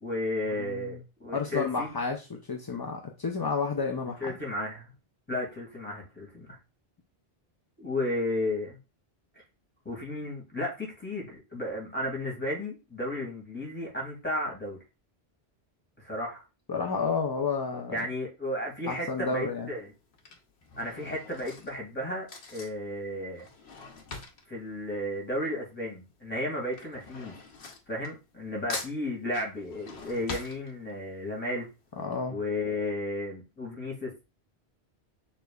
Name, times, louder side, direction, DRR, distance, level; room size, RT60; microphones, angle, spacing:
voice 1, 0.0-1.9 4.2-4.9 5.3-6.6 7.8-8.8 9.9-14.8 16.0-16.4 17.9-19.9 20.8-23.5 24.5-27.3 27.9-31.7 32.3-34.1, left 1 dB, 10° left, -2 dB, 2.1 m, -33 dB
voice 2, 0.6-1.0 1.3-4.4 16.7-18.0 18.9-19.7 32.0-32.4, left 5 dB, 35° left, 2 dB, 0.4 m, -31 dB
Drawer open or close / Cutlery silverware, 18.7-19.1 19.9-25.8 26.1-28.4 28.7-31.2 31.6-31.7 32.0-32.1, left 3 dB, 80° left, 1.1 m, -44 dB
6.6 x 3.2 x 2.3 m, 0.27 s
omnidirectional pair, 1.1 m